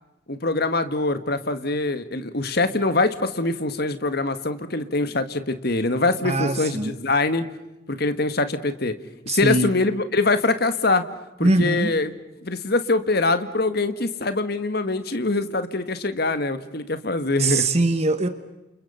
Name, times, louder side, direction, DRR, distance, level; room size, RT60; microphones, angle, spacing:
voice 1, 0.3-7.5 7.9-9.0 9.3-11.1 11.4-12.1 12.4-17.7, left 2 dB, 50° left, 10 dB, 1.7 m, -23 dB
voice 2, 6.2-7.0 9.3-9.7 11.4-11.9 17.4-18.3, right 2 dB, 35° right, 10 dB, 1.3 m, -22 dB
29.5 x 29.5 x 5.7 m, 1.0 s
head